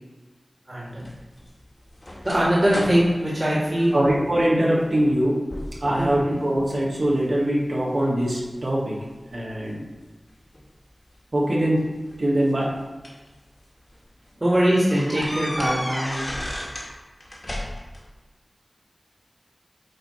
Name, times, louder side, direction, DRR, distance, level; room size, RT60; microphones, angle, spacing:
voice 1, 0.7-1.0 2.2-4.0 6.0-6.4 14.4-16.3, equal, 40° right, -7 dB, 2.1 m, -22 dB
sound 1, 1.0-4.4 4.9-5.2 5.5-6.2 6.6-7.3 7.9-9.4 10.5-10.7 11.9-13.3 13.8-14.0 14.3-14.4 14.9-16.9 17.2-18.0, left 1 dB, 40° left, 1.8 m, -34 dB
voice 2, 3.9-5.4 5.8-9.0 9.3-9.9 11.3-11.8 12.2-12.7, right 1 dB, 80° right, -5 dB, 1.9 m, -22 dB
8.7 x 3.1 x 4.4 m, 1.2 s
wide cardioid pair, 40°, 0 cm